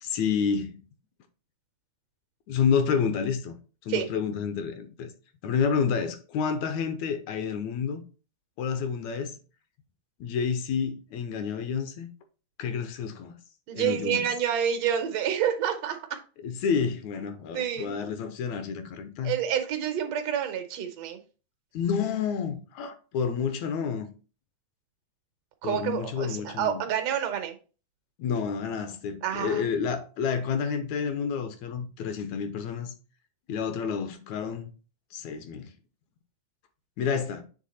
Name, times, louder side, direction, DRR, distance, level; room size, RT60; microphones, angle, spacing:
voice 1, 0.0-0.8 2.5-3.5 3.8-5.1 5.4-8.0 8.6-9.4 10.2-12.1 12.6-13.3 13.7-14.3 16.4-19.4 21.7-24.1 25.6-26.8 28.2-32.9 33.5-34.7 35.1-35.7 37.0-37.4, left 6 dB, 75° left, 1.9 m, -29 dB
voice 2, 13.7-16.2 17.5-18.0 19.2-21.2 25.6-27.6 29.2-29.7, right 9 dB, 70° right, 1.8 m, -28 dB
7.5 x 3.4 x 4.1 m
omnidirectional pair, 3.4 m